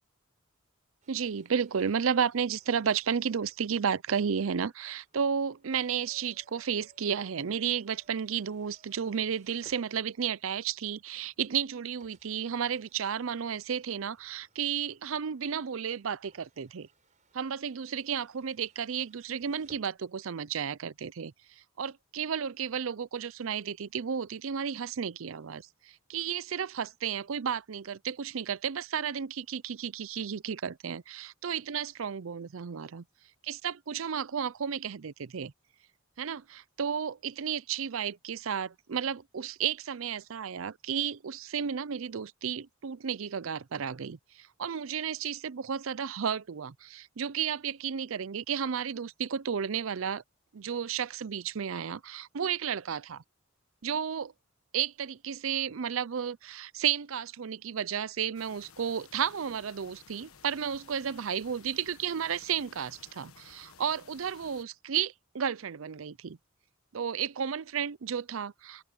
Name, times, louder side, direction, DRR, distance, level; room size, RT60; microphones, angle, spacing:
sound 1, 1.0-10.5 11.2-11.3 12.0-20.0, right 3 dB, 35° right, 6.0 m, -65 dB
voice 1, 1.1-16.9 17.3-21.3 21.8-33.0 33.4-35.5 36.2-50.2 50.5-53.2 53.8-54.3 54.7-66.4 66.9-68.8, right 7 dB, 70° right, 0.5 m, -33 dB
sound 2, 58.3-64.6, left 6 dB, 85° left, 1.4 m, -56 dB
open air
head